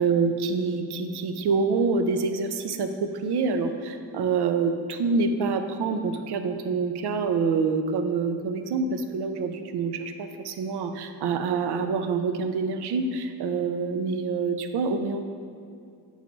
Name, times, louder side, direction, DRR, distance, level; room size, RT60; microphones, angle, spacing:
voice 1, 0.0-15.2, right 4 dB, 75° right, 8 dB, 0.6 m, -26 dB
7.9 x 3.2 x 5.2 m, 2.4 s
wide cardioid pair, 150°, 40 cm